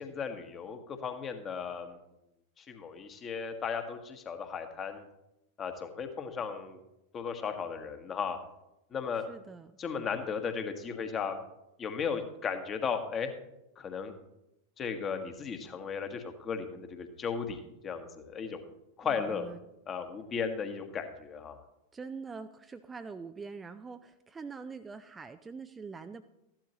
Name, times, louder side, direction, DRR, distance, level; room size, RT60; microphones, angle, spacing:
voice 1, 0.0-2.0 2.6-5.0 5.6-6.8 7.1-8.4 8.9-9.2 9.8-11.3 11.8-13.3 13.8-14.1 14.8-18.6 19.0-19.5 19.9-21.6, left 6 dB, 25° left, 7 dB, 1.4 m, -35 dB
voice 2, 9.3-9.7 19.1-19.6 21.9-26.2, right 5 dB, 15° right, 9 dB, 0.5 m, -44 dB
14.0 x 11.5 x 3.0 m, 0.87 s
figure-of-eight pair, 90°, 0 cm